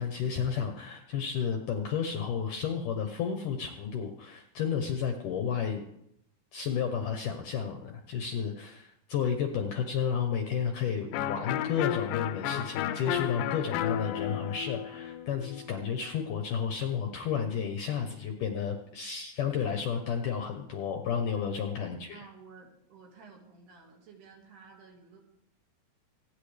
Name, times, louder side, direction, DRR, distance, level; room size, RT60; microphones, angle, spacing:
voice 1, 0.0-5.8 6.5-22.2, left 7 dB, 70° left, 4 dB, 2.0 m, -32 dB
voice 2, 9.2-9.6 18.5-19.0 21.3-21.6 22.1-25.2, right 5 dB, 70° right, 1 dB, 4.0 m, -54 dB
Electric guitar, 11.1-16.7, left 11 dB, 90° left, 2.9 m, -33 dB
26.5 x 9.7 x 3.3 m, 0.77 s
omnidirectional pair, 4.9 m